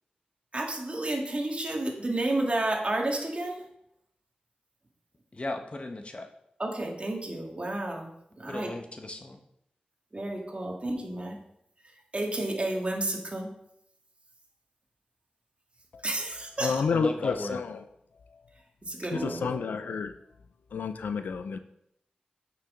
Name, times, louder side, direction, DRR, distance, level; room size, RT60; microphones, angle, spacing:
voice 1, 0.5-3.6 6.6-8.1 8.4-8.8 10.1-11.4 12.1-13.5 16.0-16.7 18.8-19.5, right 1 dB, 40° right, 0 dB, 2.0 m, -31 dB
voice 2, 5.3-6.3 8.5-9.4 16.9-17.6, left 2 dB, 40° left, 5 dB, 1.1 m, -36 dB
voice 3, 16.6-17.8 19.1-20.1 20.7-21.6, left 5 dB, 90° left, 10 dB, 0.4 m, -30 dB
8.5 x 6.2 x 3.8 m, 0.76 s
cardioid pair, 40°, 3 cm